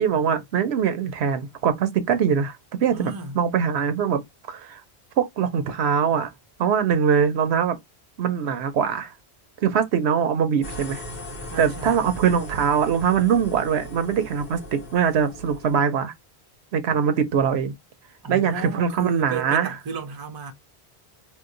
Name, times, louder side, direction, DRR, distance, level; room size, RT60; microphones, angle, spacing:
voice 1, 0.0-4.2 4.5-4.8 5.2-6.3 6.6-7.8 8.2-9.1 9.6-11.0 11.6-16.1 16.7-17.7 18.3-19.7, right 7 dB, 85° right, 0.9 m, -22 dB
voice 2, 2.9-3.4 11.5-12.0 18.2-20.5, right 4 dB, 30° right, 0.5 m, -33 dB
sound 1, 10.6-15.8, equal, 60° left, 1.2 m, -38 dB
2.9 x 2.0 x 3.7 m
omnidirectional pair, 1.1 m